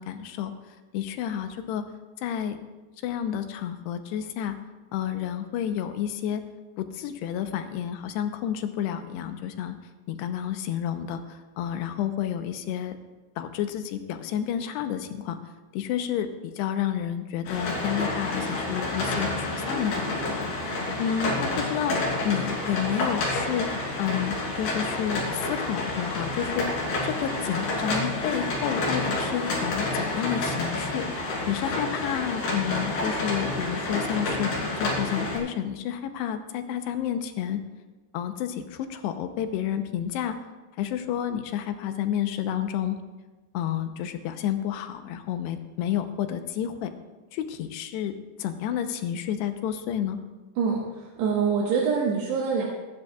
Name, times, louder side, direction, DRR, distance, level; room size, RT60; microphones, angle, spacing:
voice 1, 0.0-1.8 2.2-2.6 3.0-4.6 4.9-6.4 6.8-9.8 10.1-13.0 13.4-15.4 15.7-23.7 24.0-26.7 27.0-31.1 31.5-34.5 34.8-37.6 38.1-40.4 40.8-43.0 43.5-46.9 47.3-50.2, left 10 dB, 85° left, 8 dB, 2.9 m, -30 dB
sound 1, 17.5-35.4, left 2 dB, 70° left, 4.8 m, -29 dB
voice 2, 50.6-52.7, right 5 dB, 85° right, -3 dB, 3.5 m, -25 dB
25.0 x 10.5 x 2.3 m, 1.2 s
omnidirectional pair, 4.8 m